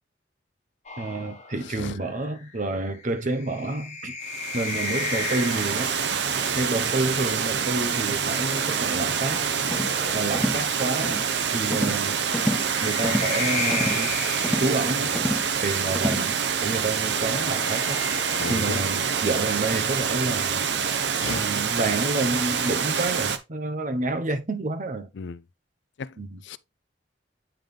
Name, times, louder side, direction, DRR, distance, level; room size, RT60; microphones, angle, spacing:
sound 1, 0.8-6.4 7.8-10.7 12.1-15.6 16.8-19.8, left 4 dB, 40° left, 1.4 m, -35 dB
voice 1, 1.0-4.2 4.5-5.9 6.5-9.5 10.1-12.2 12.8-14.2 14.6-15.1 15.6-18.0 18.5-20.6 21.3-25.1 26.2-26.4, right 2 dB, 45° right, 1.0 m, -29 dB
Water, 4.2-23.4, right 7 dB, 70° right, 0.8 m, -26 dB
sound 2, 9.7-10.0 10.3-10.7 11.0-11.3 11.7-12.1 12.3-12.7 13.0-13.4 13.7-14.0 14.4-14.8 15.2-15.5 15.9-16.3, equal, ahead, 0.3 m, -28 dB
voice 2, 18.4-18.8 21.1-21.4 25.2-25.4 26.0-26.2 26.4-26.6, left 5 dB, 75° left, 0.4 m, -34 dB
8.9 x 3.8 x 3.3 m
head